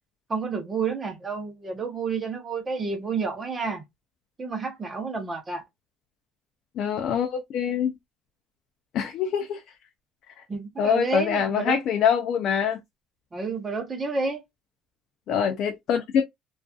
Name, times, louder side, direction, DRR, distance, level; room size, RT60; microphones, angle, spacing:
voice 1, 0.3-3.8 4.4-5.6 10.5-11.8 13.3-14.4, right 4 dB, 20° right, 0.7 m, -30 dB
voice 2, 6.8-7.9 8.9-9.6 10.8-12.8 15.3-16.2, left 8 dB, 50° left, 0.4 m, -24 dB
2.4 x 2.3 x 2.3 m
cardioid pair, 150°, 0 cm